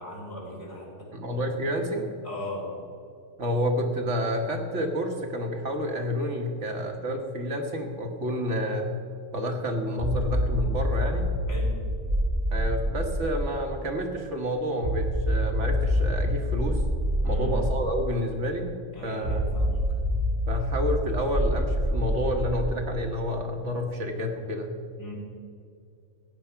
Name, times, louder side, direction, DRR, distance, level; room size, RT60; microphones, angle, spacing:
voice 1, 0.0-1.1 2.2-2.7 11.5-11.7 17.2-17.5 18.9-19.8 25.0-25.1, left 1 dB, 55° left, -3 dB, 4.2 m, -38 dB
voice 2, 1.1-2.1 3.4-9.0 9.3-11.3 12.5-16.8 17.2-18.7 19.0-19.5 20.5-24.7, equal, 70° right, 3 dB, 1.8 m, -29 dB
sound 1, 10.0-13.7 14.8-18.1 19.2-22.9, equal, 35° right, 1.3 m, -27 dB
15.0 x 9.4 x 5.8 m, 2.5 s
omnidirectional pair, 1.3 m